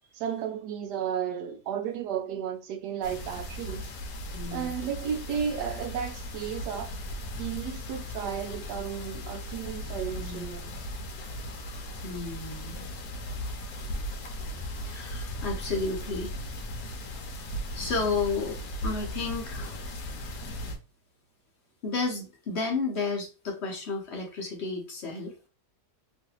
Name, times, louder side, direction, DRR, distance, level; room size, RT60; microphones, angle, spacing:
voice 1, 0.1-3.9 4.5-6.9 7.4-10.7, right 8 dB, 85° right, 1.2 m, -33 dB
sound 1, 3.0-20.8, left 1 dB, 70° left, 1.1 m, -37 dB
voice 2, 4.3-4.7 10.2-10.4 12.0-12.7 14.8-16.3 17.7-19.8 21.8-25.5, left 4 dB, 50° left, 0.9 m, -32 dB
3.1 x 2.5 x 2.9 m
omnidirectional pair, 1.7 m